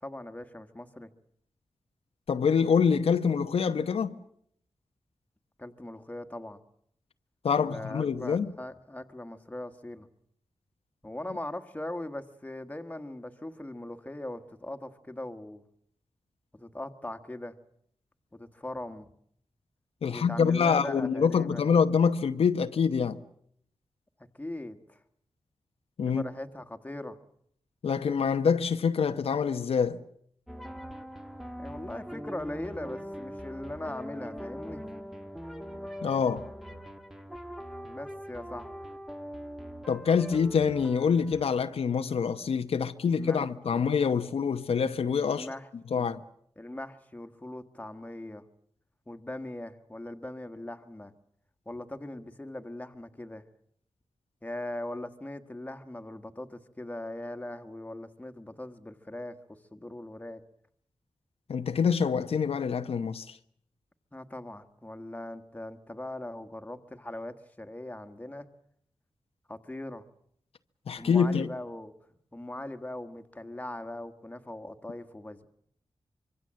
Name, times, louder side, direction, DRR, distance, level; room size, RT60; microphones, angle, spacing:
voice 1, 0.0-1.1 5.6-6.6 7.6-10.1 11.0-15.6 16.5-17.5 18.3-19.1 20.1-21.7 24.4-25.0 26.0-27.2 31.6-34.8 37.8-38.7 43.1-43.8 45.3-45.7 45.9-46.1 46.6-48.4 49.1-51.1 51.6-53.4 54.4-60.4 64.1-68.5 69.5-70.0 71.0-71.9 72.3-75.5, left 1 dB, 15° left, 1.5 m, -40 dB
voice 2, 2.3-4.1 7.4-8.5 20.0-23.2 26.0-26.2 27.8-30.0 36.0-36.5 39.9-45.5 45.9-46.2 61.5-63.4 70.9-71.5, left 6 dB, 90° left, 0.9 m, -26 dB
sound 1, 30.5-41.5, equal, ahead, 1.3 m, -42 dB
25.5 x 23.5 x 7.6 m
wide cardioid pair, 105°, 10 cm